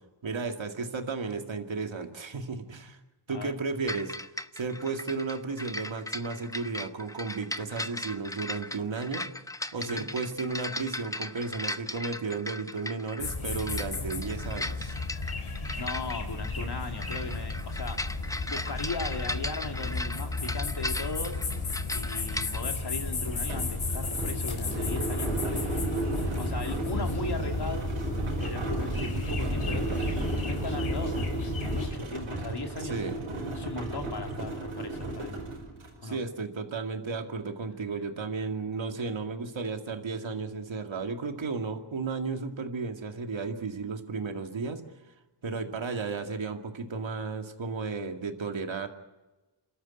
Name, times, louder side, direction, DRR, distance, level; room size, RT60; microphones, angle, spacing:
voice 1, 0.2-3.0 3.3-4.1 4.5-9.3 9.7-15.0 32.8-33.3 36.0-44.8 45.4-48.9, right 4 dB, 65° right, 5 dB, 2.3 m, -34 dB
sound 1, 3.9-22.6, left 1 dB, 5° left, 0.7 m, -37 dB
voice 2, 9.9-10.3 15.8-18.0 18.5-21.5 21.9-27.9 28.4-30.1 30.4-33.0 33.5-35.3 36.0-36.2, left 3 dB, 50° left, 4 dB, 2.6 m, -38 dB
sound 2, 13.2-31.9, left 3 dB, 75° left, 4.0 m, -34 dB
sound 3, 20.8-20.9 21.2-36.0, right 2 dB, 90° right, 5.0 m, -34 dB
28.0 x 13.0 x 8.9 m, 1.1 s
wide cardioid pair, 70°, 49 cm